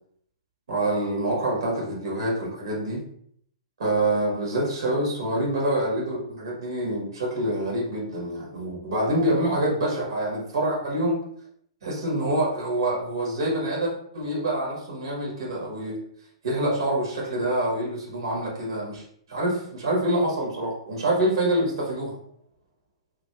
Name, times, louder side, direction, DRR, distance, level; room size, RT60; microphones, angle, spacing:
voice 1, 0.7-3.0 3.8-11.2 11.8-16.0 16.4-19.0 19.3-22.1, right 1 dB, 60° right, -3 dB, 1.2 m, -26 dB
3.3 x 2.8 x 2.8 m, 0.66 s
figure-of-eight pair, 110°, 3 cm